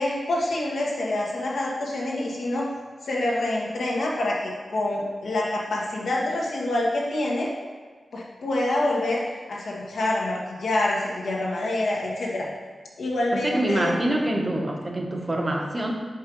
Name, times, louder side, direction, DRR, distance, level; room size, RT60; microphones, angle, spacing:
voice 1, 0.0-2.7 3.0-7.5 8.1-9.2 9.5-12.5 13.0-13.9, left 1 dB, 85° left, -4 dB, 1.5 m, -26 dB
voice 2, 13.3-15.9, right 1 dB, 25° right, 1 dB, 0.9 m, -25 dB
5.4 x 4.7 x 5.3 m, 1.5 s
wide cardioid pair, 105°, 0 cm